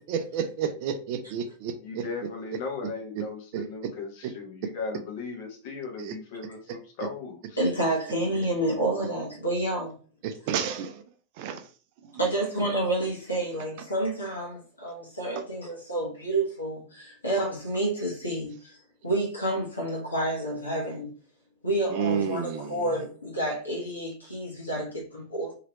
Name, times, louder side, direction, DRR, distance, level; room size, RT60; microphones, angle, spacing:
voice 1, 0.1-2.0 3.2-3.3 3.5-3.7 4.2-4.3 6.0-6.1 10.2-11.0 11.4-11.7 12.0-12.2 15.4-15.5 21.9-23.0, right 7 dB, 45° right, 0.5 m, -31 dB
voice 2, 1.8-7.6, left 4 dB, 50° left, 1.0 m, -37 dB
voice 3, 7.6-10.0 12.2-18.8 19.0-21.1 21.6-25.6, right 1 dB, 80° left, 0.9 m, -29 dB
2.9 x 2.8 x 2.9 m
figure-of-eight pair, 90°, 0 cm